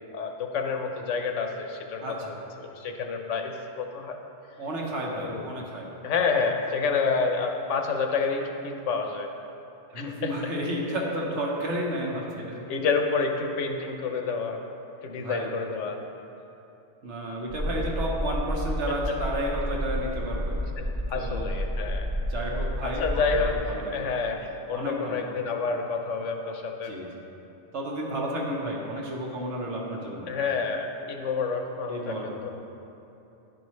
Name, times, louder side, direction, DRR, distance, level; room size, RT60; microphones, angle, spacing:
voice 1, 0.1-2.3 2.6-4.2 5.2-5.5 6.0-9.3 10.0-10.5 12.7-14.6 15.0-16.0 20.8-22.1 22.8-23.6 23.9-26.9 30.3-32.5, left 4 dB, 80° left, 4 dB, 1.0 m, -29 dB
voice 2, 2.0-2.4 4.6-5.9 9.9-12.6 15.2-15.5 17.0-20.6 21.1-21.5 22.3-24.1 24.7-25.4 26.8-27.1 27.7-30.3 31.9-32.5, right 1 dB, 70° right, -2 dB, 1.3 m, -32 dB
sound 1, 17.5-23.6, equal, 35° right, 0.5 m, -30 dB
10.5 x 4.8 x 3.1 m, 2.9 s
omnidirectional pair, 1.2 m